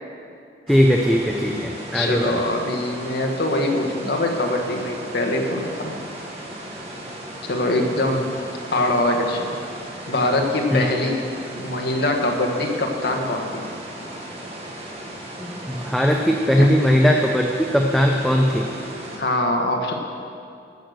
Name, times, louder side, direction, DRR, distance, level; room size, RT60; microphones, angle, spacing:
voice 1, 0.7-2.4 10.7-10.9 15.4-18.7, equal, ahead, 1 dB, 0.6 m, -19 dB
sound 1, 0.7-19.2, right 1 dB, 35° right, 1.8 m, -36 dB
voice 2, 1.9-6.0 7.5-8.2 8.7-9.5 10.1-11.2 11.6-13.6 16.6-16.7 19.2-19.9, left 1 dB, 65° left, 2 dB, 1.4 m, -23 dB
15.5 x 6.5 x 6.4 m, 2.5 s
head